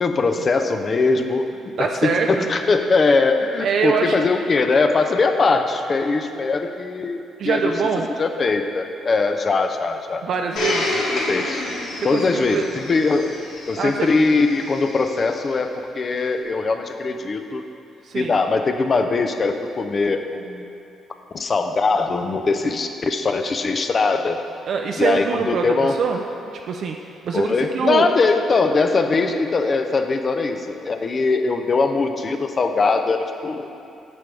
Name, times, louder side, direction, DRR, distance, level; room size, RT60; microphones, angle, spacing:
voice 1, 0.0-7.7 8.2-10.2 11.1-11.6 12.0-13.4 13.7-17.6 18.1-20.6 21.3-24.4 25.0-25.9 27.3-33.7, left 3 dB, 40° left, 6 dB, 0.6 m, -21 dB
voice 2, 1.8-2.5 3.6-4.2 7.4-8.1 10.2-11.0 12.0-12.6 13.8-14.1 18.0-18.3 22.7-22.8 24.7-25.6 26.0-26.2 26.7-27.0 27.2-28.1, right 6 dB, 65° right, 2 dB, 0.4 m, -23 dB
Domestic sounds home sounds, 10.6-15.4 16.2-16.3, left 2 dB, 75° left, 1.2 m, -29 dB
9.5 x 6.9 x 3.4 m, 2.6 s
cardioid pair, 90°, 0 cm